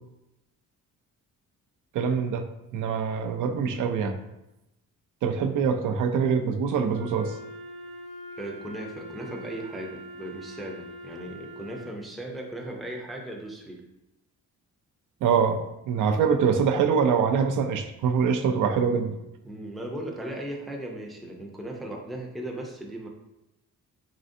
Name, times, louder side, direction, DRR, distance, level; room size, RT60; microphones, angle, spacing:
voice 1, 1.9-2.5 2.7-4.2 5.2-7.4 15.2-15.6 15.9-19.2, right 6 dB, 75° right, 6 dB, 0.5 m, -24 dB
Wind instrument woodwind instrument, 6.9-12.0, right 1 dB, 40° right, 0.7 m, -43 dB
voice 2, 8.4-13.8 19.4-23.1, right 1 dB, ahead, -1 dB, 0.4 m, -37 dB
4.1 x 3.7 x 2.6 m, 0.92 s
wide cardioid pair, 155°, 31 cm